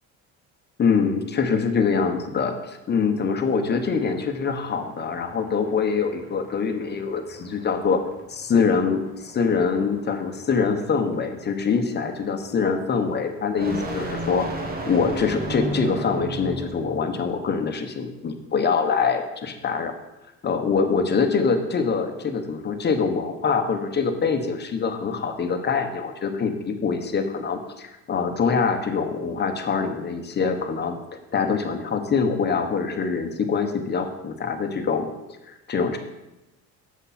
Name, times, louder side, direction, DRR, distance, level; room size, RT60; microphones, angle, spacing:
voice 1, 0.8-8.0 8.3-14.5 14.9-19.9 20.4-31.0 31.3-35.1 35.4-36.0, left 5 dB, 35° left, 6 dB, 1.1 m, -24 dB
sound 1, 3.6-17.1, right 2 dB, 30° right, 1.5 m, -36 dB
7.9 x 7.0 x 4.3 m, 0.99 s
cardioid pair, 115°, 31 cm